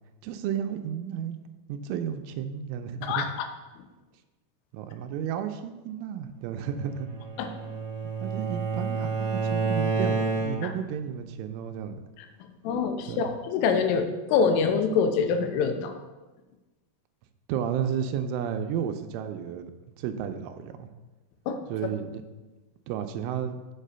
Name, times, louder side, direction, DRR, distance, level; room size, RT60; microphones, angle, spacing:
voice 1, 0.2-1.4 1.7-3.3 4.7-7.1 8.0-12.0 13.1-13.3 17.5-19.7 20.0-20.9 21.7-22.2 22.9-23.6, right 8 dB, 85° right, 7 dB, 3.0 m, -32 dB
voice 2, 3.0-3.5 7.4-7.5 10.6-10.7 12.6-15.9 21.5-21.6, left 5 dB, 90° left, 6 dB, 3.3 m, -25 dB
Bowed string instrument, 6.9-10.9, right 4 dB, 70° right, 2.0 m, -29 dB
7.4 x 5.6 x 6.7 m, 1.1 s
omnidirectional pair, 5.7 m